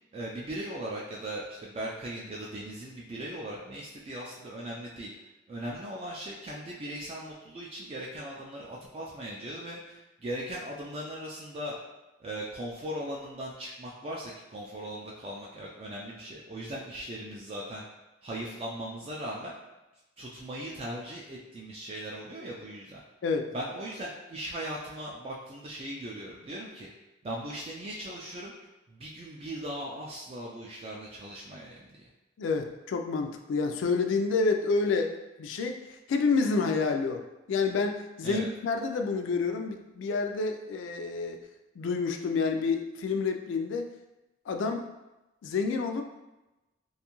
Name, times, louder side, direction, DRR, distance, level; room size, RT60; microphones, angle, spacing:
voice 1, 0.1-5.1 5.5-11.8 12.2-17.8 18.2-19.5 20.2-23.0 23.5-26.9 27.2-28.5 28.9-32.0 38.2-38.5, right 1 dB, 30° right, -4 dB, 0.3 m, -39 dB
voice 2, 32.4-41.5 41.8-43.9 44.5-44.9 45.4-46.1, left 4 dB, 80° left, 5 dB, 0.3 m, -29 dB
2.6 x 2.3 x 2.9 m, 1.0 s
head